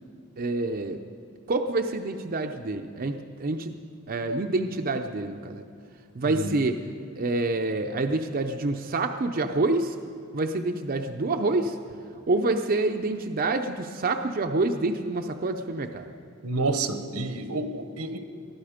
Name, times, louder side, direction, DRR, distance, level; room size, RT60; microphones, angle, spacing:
voice 1, 0.4-1.0 1.5-3.8 4.1-5.6 6.1-6.8 7.2-10.0 10.3-11.8 12.3-16.1, right 2 dB, 40° right, 5 dB, 0.6 m, -27 dB
voice 2, 16.4-18.2, right 3 dB, 85° right, 8 dB, 1.2 m, -29 dB
21.0 x 13.0 x 5.1 m, 2.3 s
head